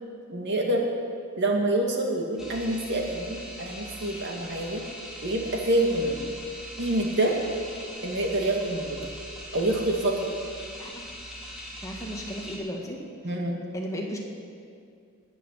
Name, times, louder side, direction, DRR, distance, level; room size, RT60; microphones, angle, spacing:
voice 1, 0.3-0.9 1.4-4.8 5.2-6.2 6.8-7.3 8.0-8.9 9.5-10.3 13.2-13.6, right 1 dB, 55° right, 1 dB, 2.1 m, -26 dB
sound 1, 2.4-12.6, equal, ahead, 2.6 m, -41 dB
voice 2, 11.8-13.0 13.7-14.2, equal, 15° left, -1 dB, 1.8 m, -34 dB
20.0 x 7.0 x 7.5 m, 2.3 s
head